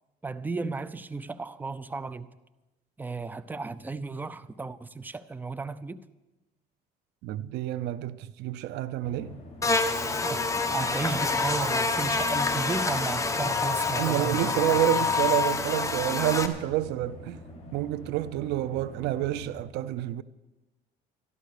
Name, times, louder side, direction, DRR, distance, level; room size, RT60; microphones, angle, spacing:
voice 1, 0.2-2.3 3.0-6.0 10.2-14.4, right 3 dB, 10° right, 0.6 m, -34 dB
voice 2, 7.2-9.3 14.0-17.4 17.7-20.2, right 14 dB, 85° right, 0.6 m, -28 dB
sound 1, 9.0-19.6, left 1 dB, 35° left, 5.1 m, -45 dB
Buzz, 9.6-16.5, left 4 dB, 20° left, 1.2 m, -27 dB
12.5 x 12.0 x 6.6 m
cardioid pair, 110°, 17 cm